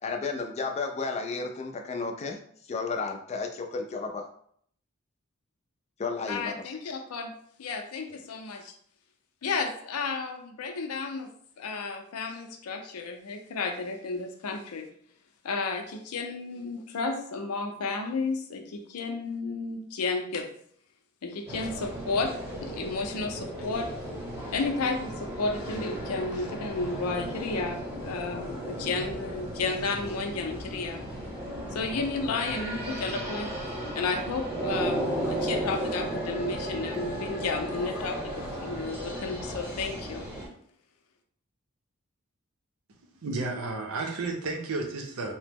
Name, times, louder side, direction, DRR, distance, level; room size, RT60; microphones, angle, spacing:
voice 1, 0.0-2.4 2.7-4.2 6.0-6.5, left 4 dB, 30° left, 3 dB, 0.3 m, -32 dB
voice 2, 6.3-7.3 7.6-8.7 9.4-11.3 11.6-14.9 15.4-20.5 21.2-23.9 24.2-31.0 31.7-33.5 33.9-40.2, left 3 dB, 90° left, 5 dB, 0.5 m, -32 dB
sound 1, 21.5-40.5, right 1 dB, 15° right, 0.9 m, -35 dB
voice 3, 43.2-45.3, right 3 dB, 75° right, 2 dB, 0.6 m, -32 dB
2.9 x 2.0 x 3.4 m, 0.63 s
head